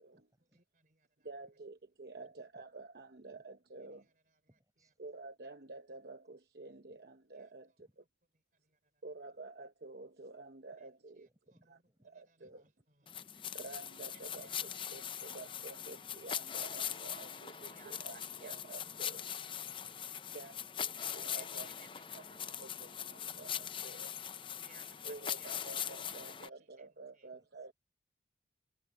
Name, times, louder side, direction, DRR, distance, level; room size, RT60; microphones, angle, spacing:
voice 1, 0.0-0.6 2.2-2.6 3.3-3.4 4.5-5.0 6.9-7.0 7.8-7.9 11.2-12.7 13.3-13.5 15.5-15.6 15.9-16.0 17.6-18.6 19.6-20.8 21.4-22.2 23.6-24.2 24.4-24.5 25.1-25.7 27.2-27.7, equal, 20° right, 6.5 m, -72 dB
voice 2, 0.5-1.3 7.4-7.5 8.6-8.8 12.1-12.5 14.1-15.4 17.1-18.8 19.6-20.1 21.3-21.9 22.3-22.5 23.2-23.3 24.6-25.8 26.8-26.9 27.1-27.3, right 5 dB, 45° right, 3.6 m, -63 dB
voice 3, 1.2-4.1 5.0-7.7 9.0-11.3 11.7-11.8 12.0-12.6 13.5-19.3 20.3-21.8 22.1-22.2 22.6-24.1 25.0-27.7, right 3 dB, 65° right, 0.9 m, -50 dB
sound 1, 13.1-26.5, left 9 dB, 30° left, 0.6 m, -41 dB
head